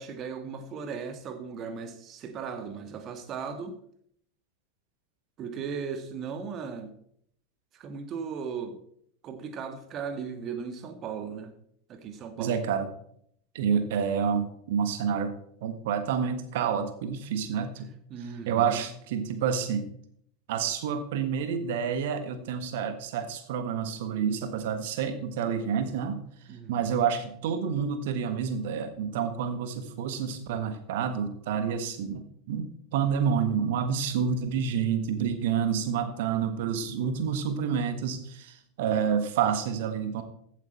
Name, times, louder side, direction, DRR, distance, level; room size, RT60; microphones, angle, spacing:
voice 1, 0.0-3.8 5.4-7.0 7.7-8.8 9.2-11.5 11.9-12.7 18.1-18.8 26.5-27.0, right 6 dB, 35° right, 8 dB, 1.8 m, -37 dB
voice 2, 12.3-12.9 13.5-17.9 18.5-19.9 20.5-26.2 26.7-40.2, right 7 dB, 55° right, 9 dB, 1.5 m, -29 dB
15.5 x 8.3 x 4.4 m, 0.68 s
figure-of-eight pair, 85°, 0 cm